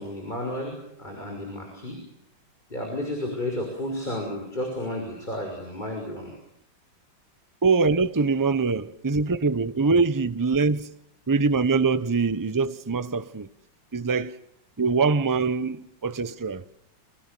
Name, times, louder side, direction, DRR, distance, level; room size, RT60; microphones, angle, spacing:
voice 1, 0.0-2.0 2.7-6.3, left 1 dB, 25° left, 6.4 m, -32 dB
voice 2, 7.6-10.9 11.3-13.5 13.9-14.3 14.8-16.6, right 4 dB, 20° right, 0.5 m, -23 dB
28.5 x 25.5 x 7.0 m
omnidirectional pair, 2.1 m